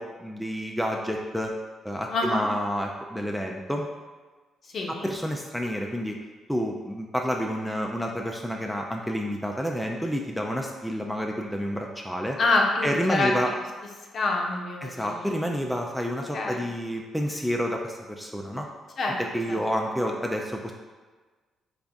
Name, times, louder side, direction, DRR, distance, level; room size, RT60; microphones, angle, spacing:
voice 1, 0.0-1.5 1.8-3.9 5.0-6.1 6.5-12.4 12.8-13.5 14.8-18.7 19.2-20.7, equal, ahead, 0 dB, 0.4 m, -29 dB
voice 2, 2.1-2.5 4.7-5.1 12.4-13.4 14.1-15.3 16.3-16.6 19.0-19.2 19.5-19.6, left 2 dB, 50° left, 0 dB, 0.6 m, -26 dB
3.9 x 2.4 x 3.5 m, 1.3 s
cardioid pair, 90°, 0 cm